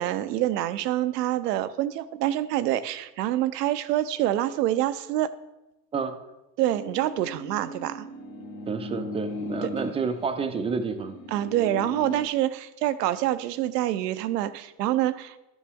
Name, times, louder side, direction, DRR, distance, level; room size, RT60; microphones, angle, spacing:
voice 1, 0.0-5.3 6.6-8.1 9.6-9.7 11.3-15.3, right 13 dB, 85° right, 13 dB, 0.7 m, -26 dB
sound 1, 6.7-12.3, left 2 dB, 55° left, 1.7 m, -38 dB
voice 2, 8.7-11.2, right 5 dB, 15° right, 8 dB, 0.4 m, -29 dB
12.0 x 7.2 x 3.5 m, 0.96 s
supercardioid pair, 110°, 48 cm